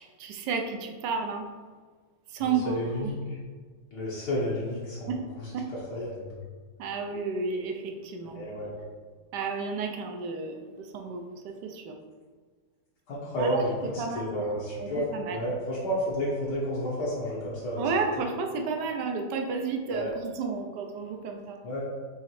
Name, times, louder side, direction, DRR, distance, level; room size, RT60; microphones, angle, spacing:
voice 1, 0.0-1.5 2.3-3.1 5.1-5.7 6.8-8.4 9.3-12.0 13.4-15.4 17.8-21.6, right 4 dB, 75° right, 4 dB, 1.1 m, -32 dB
voice 2, 2.6-3.2 3.9-5.1 5.9-6.3 8.3-8.7 13.1-15.0 15.3-17.8 19.9-20.1 21.6-21.8, equal, 65° left, -7 dB, 1.5 m, -31 dB
5.6 x 3.1 x 3.0 m, 1.5 s
omnidirectional pair, 2.0 m